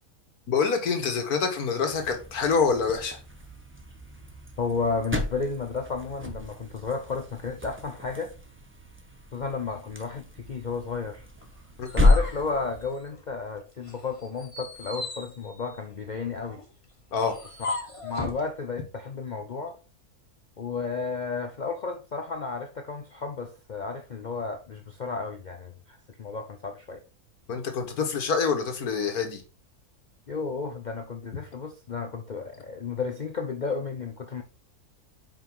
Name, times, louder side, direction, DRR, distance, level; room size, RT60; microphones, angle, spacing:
voice 1, 0.5-3.2 11.8-11.9 17.1-17.4 27.5-29.4, left 5 dB, 80° left, 1.8 m, -26 dB
sound 1, 1.9-13.0, left 2 dB, 10° right, 0.9 m, -31 dB
voice 2, 4.6-8.3 9.3-11.3 11.9-16.6 17.6-17.8 18.0-19.8 20.6-27.0 30.3-34.4, left 4 dB, 60° left, 0.4 m, -33 dB
sound 2, 11.4-13.4 13.8-18.5, left 2 dB, 20° left, 1.6 m, -38 dB
5.5 x 5.2 x 4.6 m
omnidirectional pair, 1.6 m